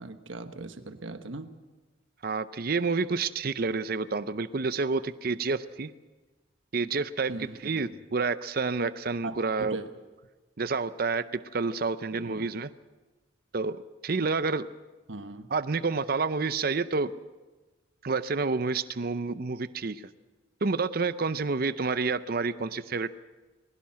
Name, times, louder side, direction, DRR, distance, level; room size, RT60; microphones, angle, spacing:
voice 1, 0.0-1.5 7.3-7.9 9.2-9.9 12.2-12.5 15.1-15.5, right 2 dB, 70° right, 9 dB, 1.2 m, -39 dB
voice 2, 2.2-5.9 6.7-9.8 10.6-11.2 11.5-12.7 13.5-13.8 14.0-14.7 15.5-17.1 18.0-20.0 20.6-23.1, right 4 dB, 50° right, 14 dB, 0.6 m, -29 dB
21.0 x 17.5 x 7.6 m, 1.2 s
head